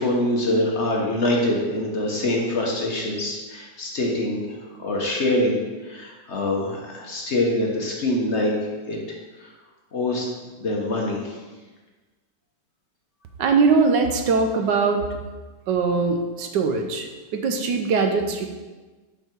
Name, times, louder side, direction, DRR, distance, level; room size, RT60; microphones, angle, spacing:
voice 1, 0.0-8.5 8.9-9.5 9.9-10.2 10.6-11.4, left 1 dB, 45° left, -1 dB, 1.1 m, -25 dB
voice 2, 13.4-15.0 15.7-17.1 17.3-18.5, right 4 dB, 90° right, 5 dB, 1.4 m, -21 dB
5.8 x 5.6 x 4.5 m, 1.3 s
omnidirectional pair, 1.8 m